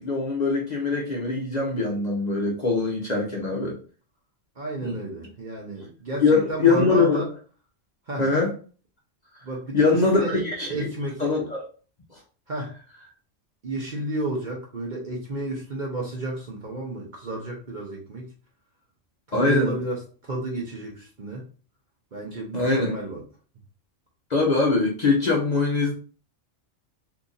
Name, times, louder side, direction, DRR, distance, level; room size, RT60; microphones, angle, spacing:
voice 1, 0.0-3.8 4.8-4.9 6.2-7.2 8.2-8.5 9.7-10.9 11.2-11.6 19.3-19.8 22.5-22.9 24.3-25.9, left 3 dB, 40° left, 0.7 m, -22 dB
voice 2, 4.6-7.3 8.1-8.3 9.4-11.3 12.5-12.7 13.6-18.3 19.3-21.4 22.1-23.2, right 2 dB, 45° right, 0.7 m, -32 dB
2.8 x 2.5 x 3.8 m
omnidirectional pair, 1.3 m